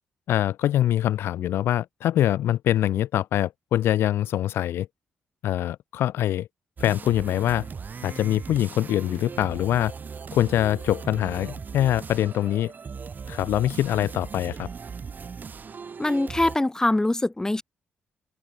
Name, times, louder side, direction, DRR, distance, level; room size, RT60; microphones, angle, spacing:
voice 1, 0.3-4.9 5.4-6.5 6.8-7.7 8.0-9.9 10.3-12.7 13.3-14.7, left 12 dB, 75° left, 0.9 m, -24 dB
sound 1, 6.8-16.6, right 6 dB, 50° right, 6.4 m, -38 dB
voice 2, 16.0-17.6, left 2 dB, 15° left, 1.6 m, -23 dB
open air
supercardioid pair, 60°, 4 cm